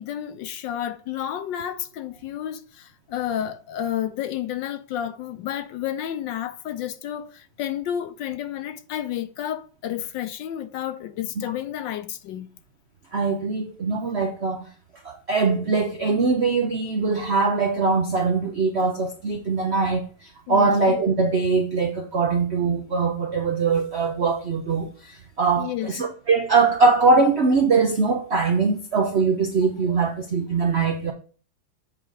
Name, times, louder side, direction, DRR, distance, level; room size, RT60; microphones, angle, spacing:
voice 1, 0.0-12.5 20.5-20.8 25.6-25.9 29.9-30.1, left 10 dB, 70° left, 1.2 m, -31 dB
voice 2, 13.1-14.7 15.0-31.1, right 4 dB, 75° right, 0.6 m, -22 dB
7.9 x 3.8 x 4.7 m
omnidirectional pair, 2.2 m